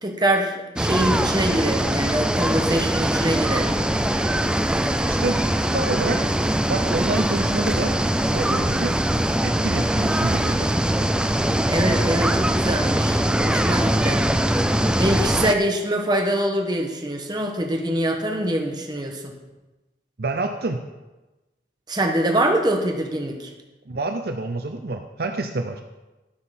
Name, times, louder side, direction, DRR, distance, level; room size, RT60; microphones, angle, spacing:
voice 1, 0.0-3.7 11.7-14.3 15.0-19.4 21.9-23.5, right 1 dB, 25° right, 3 dB, 1.3 m, -24 dB
sound 1, 0.8-15.5, right 1 dB, 5° right, 0.4 m, -22 dB
voice 2, 5.1-6.2 6.7-8.0 8.2-8.9 9.4-10.7 20.2-20.8 23.9-25.8, right 2 dB, 60° right, 6 dB, 0.6 m, -28 dB
12.0 x 5.8 x 5.9 m, 1.1 s
head